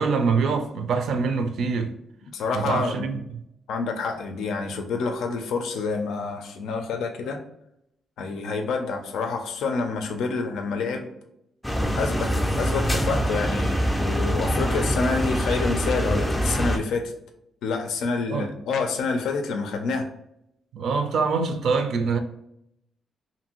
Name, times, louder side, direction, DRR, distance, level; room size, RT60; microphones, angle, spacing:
voice 1, 0.0-1.9 2.5-3.4 18.3-18.5 20.7-22.2, right 5 dB, 70° right, 0.4 m, -24 dB
voice 2, 2.3-3.1 3.7-7.4 8.2-11.1 12.0-12.3 12.6-17.1 17.6-20.1, left 4 dB, 90° left, 0.5 m, -28 dB
sound 1, 11.6-16.8, equal, 5° left, 0.4 m, -24 dB
2.6 x 2.6 x 2.9 m
cardioid pair, 140°, 0 cm